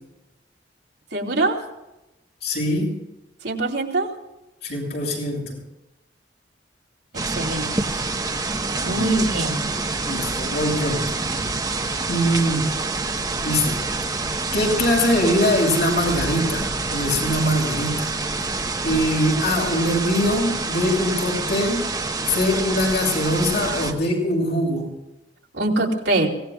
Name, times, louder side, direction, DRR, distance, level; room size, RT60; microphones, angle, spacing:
voice 1, 1.1-1.6 3.4-4.1 7.3-7.9 8.8-9.6 25.5-26.3, right 2 dB, 75° right, 0 dB, 3.1 m, -23 dB
voice 2, 2.4-3.0 4.6-5.6 8.8-9.2 10.0-11.0 12.1-12.7 13.4-13.8 14.5-18.1 18.8-21.9 22.3-24.9, left 1 dB, 65° left, 0 dB, 6.7 m, -22 dB
sound 1, 7.1-23.9, right 3 dB, 20° right, 1.2 m, -27 dB
24.0 x 18.0 x 2.4 m, 0.96 s
head